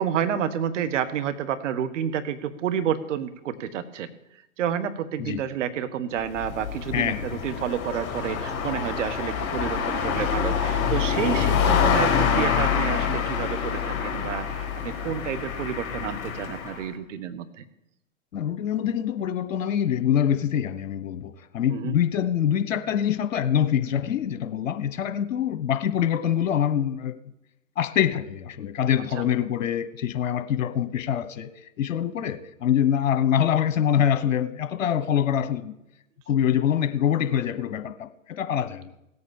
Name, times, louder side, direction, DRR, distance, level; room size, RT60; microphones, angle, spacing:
voice 1, 0.0-4.1 4.6-17.6 21.7-22.0 29.2-29.3, right 9 dB, 60° right, 1.6 m, -29 dB
sound 1, 6.2-16.8, left 7 dB, 35° left, 4.2 m, -26 dB
voice 2, 6.9-7.4 18.3-27.1 27.8-31.5 31.8-35.7 36.3-38.9, left 9 dB, 65° left, 1.3 m, -25 dB
17.0 x 8.6 x 7.2 m
hypercardioid pair, 115°, 41 cm